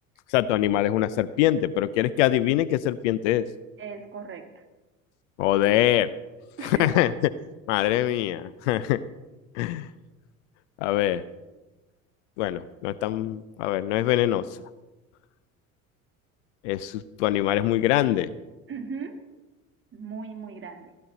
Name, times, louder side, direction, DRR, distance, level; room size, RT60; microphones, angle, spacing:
voice 1, 0.3-3.5 5.4-6.1 6.6-7.1 7.7-9.0 9.5-9.9 10.8-11.2 12.4-14.5 16.6-18.3, left 13 dB, 60° left, 16 dB, 0.6 m, -23 dB
voice 2, 3.8-4.6 6.6-7.1 18.7-19.2 19.9-21.0, right 5 dB, 30° right, 4 dB, 1.9 m, -37 dB
16.0 x 11.0 x 4.0 m, 1.1 s
figure-of-eight pair, 65°, 42 cm